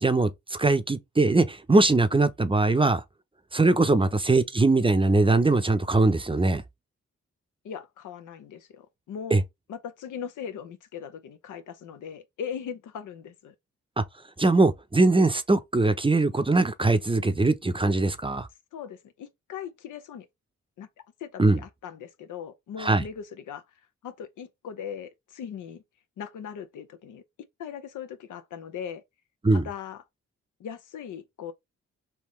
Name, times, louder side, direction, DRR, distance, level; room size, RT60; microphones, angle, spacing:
voice 1, 0.0-3.0 3.5-6.6 9.3-9.4 14.0-14.1 14.4-18.5 21.4-21.6 22.8-23.0 29.4-29.7, right 2 dB, 15° right, 0.6 m, -21 dB
voice 2, 7.6-9.4 9.7-13.5 18.7-20.3 20.8-20.9 21.2-23.6 24.0-25.8 26.2-27.2 27.6-29.0 29.5-30.0 30.6-31.5, left 8 dB, 75° left, 0.7 m, -39 dB
3.5 x 2.8 x 3.1 m
supercardioid pair, 45°, 31 cm